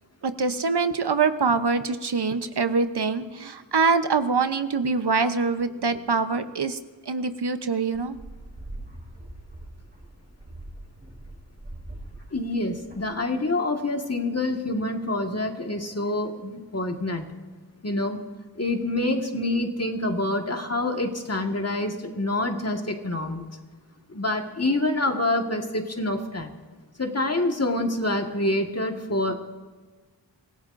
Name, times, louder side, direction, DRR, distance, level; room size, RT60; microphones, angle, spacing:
voice 1, 0.2-6.8 7.1-8.1, right 4 dB, 65° right, 10 dB, 0.8 m, -24 dB
sound 1, 7.9-13.4, right 1 dB, 20° right, 3.4 m, -43 dB
voice 2, 12.3-17.3 17.8-18.2 18.6-23.5 24.1-26.6 27.0-29.3, left 2 dB, 35° left, 3 dB, 1.7 m, -26 dB
25.0 x 16.0 x 2.6 m, 1.4 s
wide cardioid pair, 55°, 44 cm